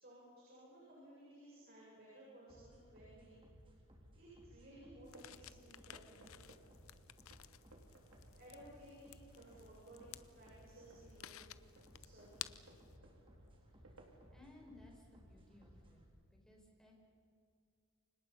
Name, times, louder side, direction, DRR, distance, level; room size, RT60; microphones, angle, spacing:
voice 1, 0.0-3.4 4.1-6.4 8.4-10.1 10.3-11.4 11.9-12.6, right 1 dB, 45° right, -6 dB, 7.8 m, -58 dB
sound 1, 2.5-16.1, equal, 25° right, 3.9 m, -62 dB
sound 2, 5.0-14.5, right 2 dB, 70° right, 3.5 m, -65 dB
sound 3, 5.1-12.9, left 12 dB, 70° left, 0.7 m, -55 dB
voice 2, 14.3-16.0 16.3-16.9, left 2 dB, 5° left, -1 dB, 5.2 m, -61 dB
29.0 x 25.5 x 5.7 m, 2.4 s
head